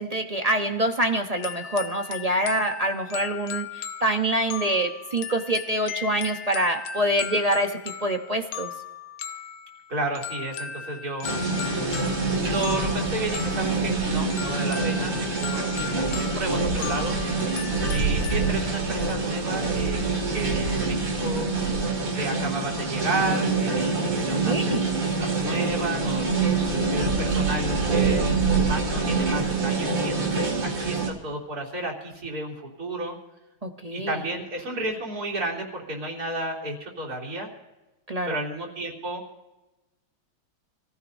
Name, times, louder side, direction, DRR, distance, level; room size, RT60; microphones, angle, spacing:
voice 1, 0.0-8.7 17.7-18.1 24.5-24.8 33.6-34.2 38.1-38.4, right 1 dB, 30° right, 4 dB, 0.7 m, -26 dB
sound 1, 1.4-18.5, left 8 dB, 70° left, 1.4 m, -37 dB
voice 2, 9.9-11.3 12.4-15.6 16.3-17.2 17.9-20.0 20.3-21.5 22.1-26.3 26.9-33.2 33.9-37.5 38.3-39.2, right 2 dB, 50° right, -3 dB, 3.7 m, -32 dB
sound 2, 11.2-31.1, right 3 dB, 65° right, 3.6 m, -25 dB
27.0 x 15.5 x 2.7 m, 1.1 s
omnidirectional pair, 2.2 m